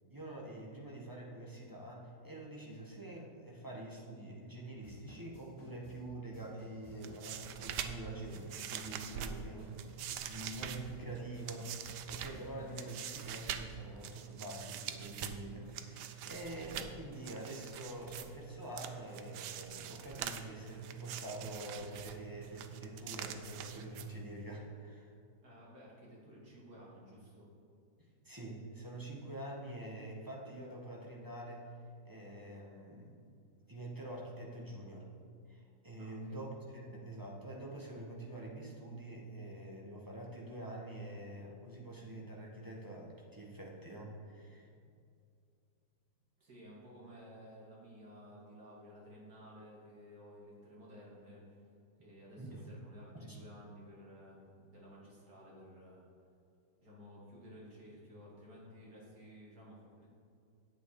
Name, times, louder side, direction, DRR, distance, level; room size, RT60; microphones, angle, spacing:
voice 1, 0.1-9.8 10.3-25.1 28.0-31.8 32.0-33.2 33.7-35.1 35.5-44.7 52.4-52.6 53.1-53.4, right 1 dB, 15° right, -3 dB, 1.3 m, -46 dB
sound 1, 4.8-13.0, left 2 dB, 45° left, 2.0 m, -58 dB
sound 2, 6.9-24.5, right 9 dB, 75° right, 1.2 m, -45 dB
voice 2, 25.4-27.5 36.0-36.4 46.4-56.1 56.8-60.1, equal, 55° right, -5 dB, 3.0 m, -55 dB
9.5 x 8.2 x 4.8 m, 2.4 s
omnidirectional pair, 1.9 m